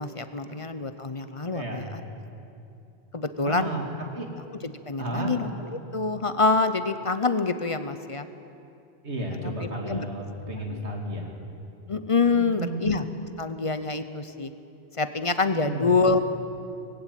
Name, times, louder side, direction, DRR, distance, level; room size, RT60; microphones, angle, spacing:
voice 1, 0.0-2.0 3.1-3.7 4.6-8.3 9.4-10.1 10.7-10.8 11.9-13.0 13.4-14.5 15.0-16.2, left 4 dB, 35° left, 10 dB, 0.8 m, -26 dB
voice 2, 1.5-1.9 3.4-3.9 4.1-4.3 5.0-5.3 9.0-11.3 12.3-12.9 15.5-15.9, right 2 dB, 90° right, 1 dB, 3.1 m, -33 dB
19.5 x 16.0 x 9.1 m, 2.6 s
omnidirectional pair, 1.1 m